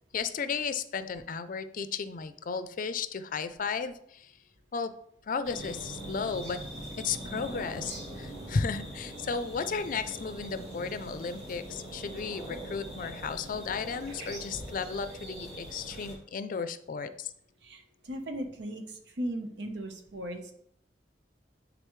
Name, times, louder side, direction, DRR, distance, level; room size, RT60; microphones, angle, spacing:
voice 1, 0.1-4.3 4.7-4.9 5.3-6.6 7.0-17.3, left 5 dB, 50° left, 11 dB, 0.4 m, -34 dB
sound 1, 5.4-16.1, right 1 dB, 40° right, 2.9 m, -42 dB
voice 2, 17.6-20.5, right 1 dB, 90° right, 5 dB, 1.0 m, -37 dB
9.9 x 3.8 x 3.1 m, 0.72 s
head